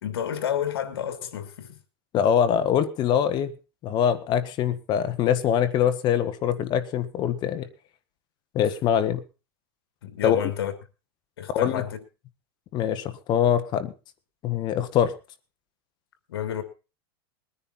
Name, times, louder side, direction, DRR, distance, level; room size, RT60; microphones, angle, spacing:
voice 1, 0.0-1.8 10.0-10.7 11.4-12.0 16.3-16.6, left 9 dB, 80° left, 3.1 m, -30 dB
voice 2, 2.1-3.5 3.8-7.7 8.5-9.2 10.2-10.4 11.5-11.8 12.7-13.9 14.4-15.1, left 9 dB, 35° left, 1.5 m, -23 dB
21.0 x 10.0 x 4.3 m
supercardioid pair, 135°, 13 cm